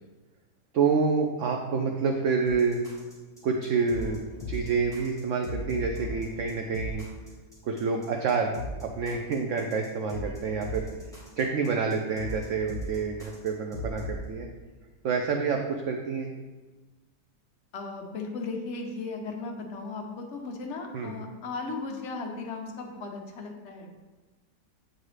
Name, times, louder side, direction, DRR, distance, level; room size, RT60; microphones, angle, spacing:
voice 1, 0.7-2.8 3.4-7.0 7.6-8.5 8.8-10.9 11.4-14.5 15.0-16.3 20.9-21.2, right 5 dB, 75° right, 2 dB, 0.7 m, -28 dB
sound 1, 2.5-14.2, left 1 dB, ahead, 1.7 m, -39 dB
voice 2, 17.7-23.9, left 3 dB, 55° left, 1 dB, 1.0 m, -36 dB
7.6 x 3.9 x 3.2 m, 1.3 s
omnidirectional pair, 1.8 m